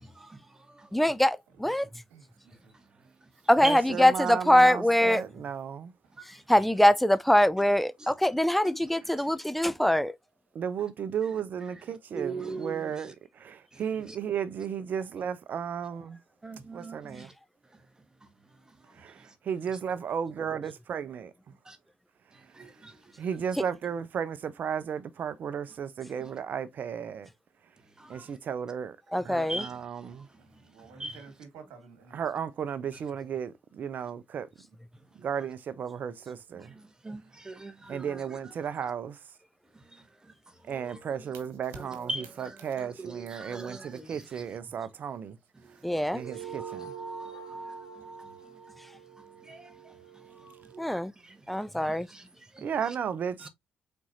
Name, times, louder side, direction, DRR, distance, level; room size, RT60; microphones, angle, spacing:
voice 1, 0.9-1.9 3.5-5.2 6.5-10.1 29.1-29.7 45.8-46.2 50.8-51.1 51.5-52.1, left 1 dB, 5° left, 0.5 m, -23 dB
voice 2, 1.8-2.7 22.6-22.7 30.4-32.3 42.6-42.7, right 5 dB, 75° right, 1.6 m, -52 dB
voice 3, 3.6-5.9 10.5-16.2 16.7-17.3 19.0-19.1 19.5-21.3 23.2-27.3 28.1-29.0 29.2-30.3 32.1-34.5 35.2-36.7 37.9-39.2 40.7-45.4 46.1-46.9 52.6-53.5, right 7 dB, 55° right, 0.7 m, -34 dB
voice 4, 12.1-12.9 16.4-17.2 21.7-21.8 22.6-22.9 26.2-26.3 28.0-28.2 29.5-29.7 31.0-31.2 37.0-38.2 40.7-41.0 41.8-44.2 46.1-46.2 49.5-49.7 50.7-51.3 51.8-52.2 52.5-52.6 53.4-53.5, right 2 dB, 20° right, 1.2 m, -39 dB
sound 1, 46.1-50.9, right 5 dB, 30° left, 2.3 m, -43 dB
4.6 x 4.3 x 2.6 m
hypercardioid pair, 50°, 4 cm